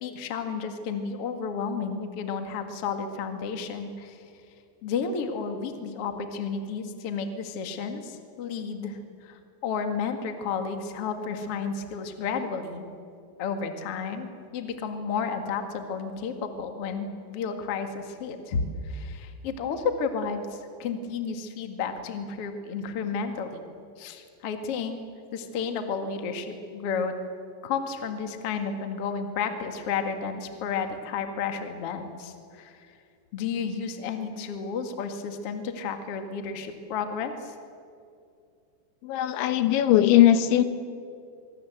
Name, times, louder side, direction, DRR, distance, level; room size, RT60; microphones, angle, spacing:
voice 1, 0.0-4.2 4.8-12.8 13.4-23.6 24.0-25.0 25.3-27.1 27.6-32.9 33.3-37.5, left 5 dB, 50° left, 6 dB, 1.9 m, -32 dB
voice 2, 39.0-40.6, left 12 dB, 85° left, 10 dB, 3.6 m, -19 dB
24.5 x 24.0 x 7.9 m, 2.4 s
omnidirectional pair, 5.2 m